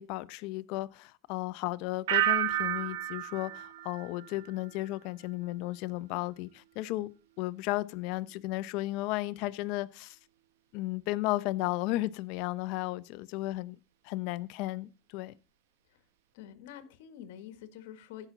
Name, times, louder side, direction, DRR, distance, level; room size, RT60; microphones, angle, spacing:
voice 1, 0.0-7.1 7.4-10.2 10.7-13.8 14.0-15.4, left 18 dB, 60° left, 0.7 m, -34 dB
sound 1, 2.1-4.9 5.2-5.7, right 13 dB, 90° right, 0.9 m, -32 dB
voice 2, 16.3-18.3, left 10 dB, 80° left, 1.6 m, -47 dB
15.0 x 5.9 x 4.0 m
supercardioid pair, 130°, 0 cm